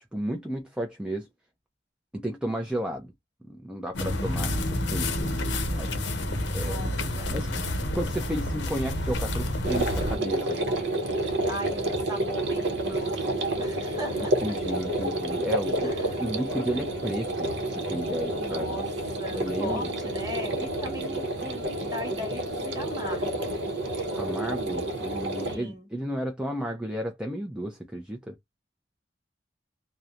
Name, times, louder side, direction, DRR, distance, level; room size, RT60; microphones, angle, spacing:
voice 1, 0.1-1.3 2.1-3.1 3.4-4.6 4.9-5.9 6.5-6.9 7.3-10.6 14.4-15.9 16.2-18.8 19.3-19.9 24.2-28.3, equal, 5° right, 0.4 m, -33 dB
sound 1, 3.9-10.2, left 1 dB, 80° left, 0.6 m, -29 dB
voice 2, 6.5-7.4 11.5-14.6 15.8-16.2 18.4-18.9 19.2-23.5 25.4-25.9, equal, 20° right, 1.0 m, -38 dB
sound 2, 9.6-25.6, right 1 dB, 75° right, 0.8 m, -29 dB
2.9 x 2.0 x 2.4 m
head